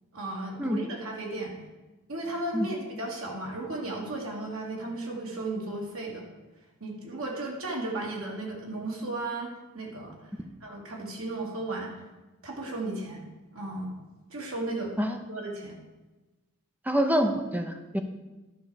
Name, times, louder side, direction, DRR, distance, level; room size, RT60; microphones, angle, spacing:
voice 1, 0.1-1.5 2.1-6.3 6.8-10.3 10.6-11.9 12.4-13.2 13.5-13.9 14.3-15.0 15.3-15.8, right 2 dB, 80° right, -1 dB, 2.1 m, -35 dB
voice 2, 16.9-18.0, equal, 10° right, 5 dB, 0.6 m, -26 dB
11.0 x 5.7 x 4.9 m, 1.1 s
head